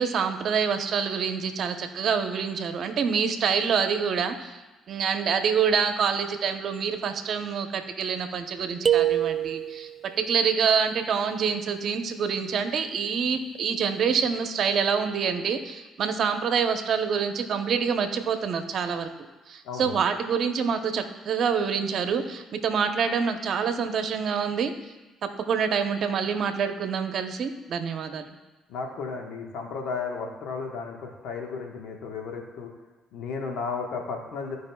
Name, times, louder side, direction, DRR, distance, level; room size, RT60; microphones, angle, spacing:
voice 1, 0.0-4.6 4.9-9.9 10.2-19.1 19.5-24.7 25.2-28.3, right 6 dB, 60° right, 7 dB, 0.8 m, -26 dB
sound 1, 8.8-10.0, right 10 dB, 45° right, 0.4 m, -24 dB
voice 2, 19.6-20.0 28.7-32.7 33.1-34.6, left 5 dB, 75° left, 1 dB, 1.3 m, -34 dB
14.0 x 5.1 x 2.3 m, 1.1 s
supercardioid pair, 60°, 0 cm